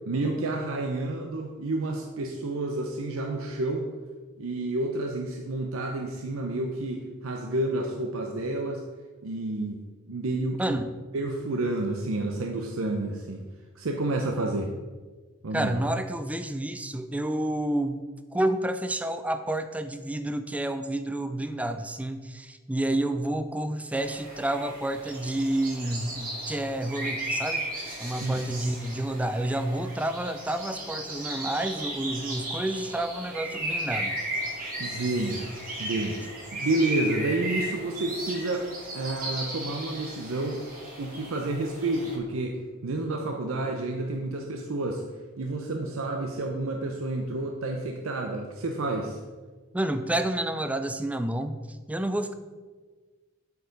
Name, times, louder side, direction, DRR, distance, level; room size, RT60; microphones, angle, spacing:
voice 1, 0.1-3.9 4.4-8.8 9.2-10.8 11.1-13.5 13.8-14.7 15.4-15.8 28.2-28.3 34.8-35.4 35.8-36.2 36.5-38.7 38.9-40.6 41.0-42.6 42.8-45.0 45.4-49.2, right 2 dB, 75° right, 3 dB, 0.7 m, -30 dB
voice 2, 10.6-10.9 15.5-18.0 18.3-27.6 28.0-34.2 49.7-52.3, right 1 dB, 5° right, 9 dB, 0.4 m, -29 dB
sound 1, 23.9-42.2, right 1 dB, 40° right, 2.2 m, -35 dB
8.1 x 4.7 x 5.2 m, 1.4 s
head